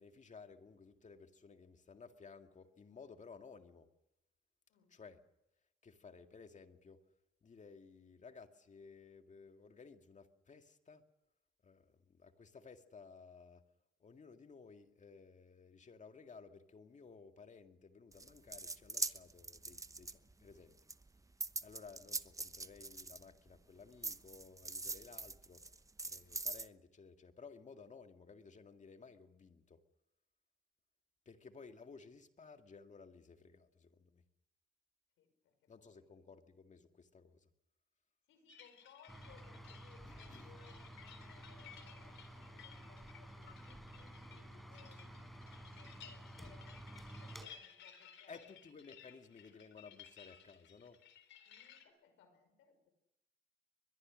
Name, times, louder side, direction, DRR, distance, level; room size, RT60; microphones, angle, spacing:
voice 1, 0.0-3.9 4.9-5.2 5.8-7.0 7.4-11.0 11.6-13.6 14.0-20.8 21.6-25.6 26.0-29.8 31.3-34.2 35.7-37.5 40.0-40.6 48.3-51.0, left 5 dB, 40° left, 6 dB, 2.1 m, -57 dB
sound 1, 18.1-20.5 20.9-23.6 24.0-26.7, right 3 dB, 15° right, 0.9 m, -42 dB
voice 2, 35.2-36.0 38.3-45.3 45.6-48.6 49.1-49.2 51.5-52.9, left 7 dB, 90° left, 8 dB, 5.5 m, -65 dB
sound 2, 38.5-51.8, left 8 dB, 70° left, 3.8 m, -59 dB
sound 3, 39.1-47.5, right 1 dB, ahead, 4.8 m, -52 dB
23.5 x 21.5 x 6.4 m, 0.92 s
cardioid pair, 90°, 20 cm